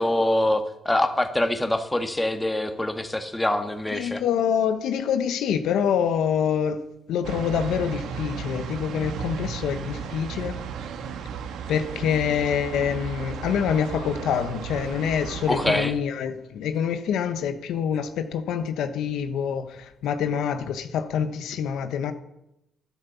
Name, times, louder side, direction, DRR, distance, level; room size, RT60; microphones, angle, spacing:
voice 1, 0.0-4.2 15.5-15.9, left 1 dB, 10° left, 1.7 m, -24 dB
voice 2, 3.9-10.6 11.7-22.1, left 8 dB, 85° left, 1.1 m, -26 dB
sound 1, 7.2-15.9, right 7 dB, 85° right, 1.4 m, -34 dB
12.0 x 11.5 x 7.0 m
cardioid pair, 85°, 0 cm